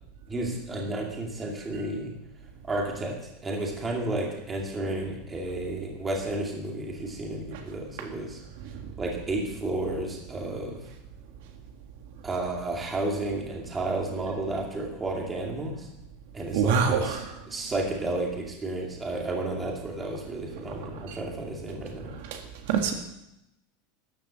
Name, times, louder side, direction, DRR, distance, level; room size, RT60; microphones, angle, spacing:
voice 1, 0.3-2.1 2.7-3.2 3.4-8.4 9.0-10.8 12.2-15.9 16.3-17.2 17.5-22.1, right 2 dB, 10° right, -1 dB, 2.4 m, -32 dB
voice 2, 16.5-17.4 20.6-21.2 22.1-22.4 22.7-22.9, right 6 dB, 55° right, 4 dB, 1.8 m, -27 dB
13.5 x 11.0 x 7.4 m, 0.86 s
supercardioid pair, 180°, 0 cm